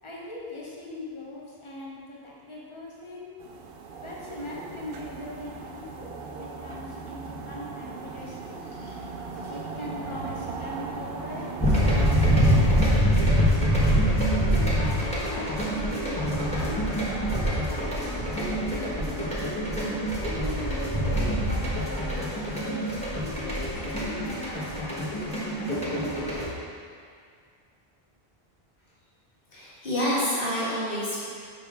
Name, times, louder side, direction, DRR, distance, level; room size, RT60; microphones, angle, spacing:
voice 1, 0.0-3.3 4.0-8.8 9.5-13.5 14.3-19.6 20.3-25.6, left 2 dB, 30° left, -4 dB, 1.0 m, -40 dB
sound 1, 3.4-13.0, right 4 dB, 70° right, 0.8 m, -38 dB
sound 2, 11.6-26.5, equal, 5° left, 1.1 m, -25 dB
voice 2, 29.5-31.2, equal, 60° left, -9 dB, 1.8 m, -28 dB
6.7 x 5.1 x 3.6 m, 2.2 s
omnidirectional pair, 1.0 m